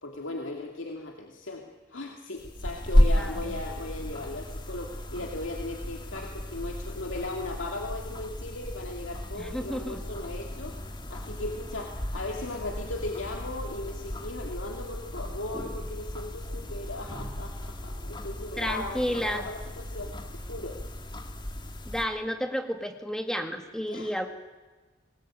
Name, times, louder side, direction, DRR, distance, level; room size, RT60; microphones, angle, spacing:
voice 1, 0.0-10.8 11.1-20.8 23.9-24.1, left 2 dB, 80° left, 2 dB, 2.4 m, -37 dB
sound 1, 2.4-22.0, equal, 25° left, 2.0 m, -33 dB
voice 2, 3.1-3.6 9.4-10.0 18.6-19.4 21.8-24.3, equal, 5° left, 6 dB, 2.1 m, -31 dB
25.5 x 19.5 x 8.9 m, 1.2 s
head